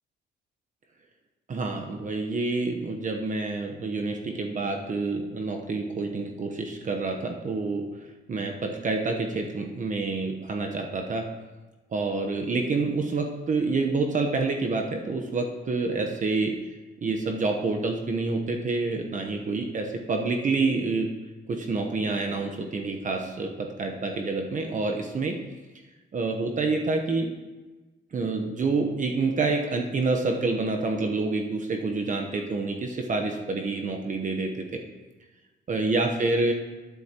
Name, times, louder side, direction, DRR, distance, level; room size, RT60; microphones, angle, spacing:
voice 1, 1.5-7.8 8.3-11.3 11.9-16.6 17.0-21.1 21.5-25.4 26.1-27.3 28.1-34.6 35.7-36.5, right 3 dB, 40° right, 3 dB, 0.9 m, -27 dB
10.5 x 9.6 x 2.9 m, 1.2 s
cardioid pair, 90°, 20 cm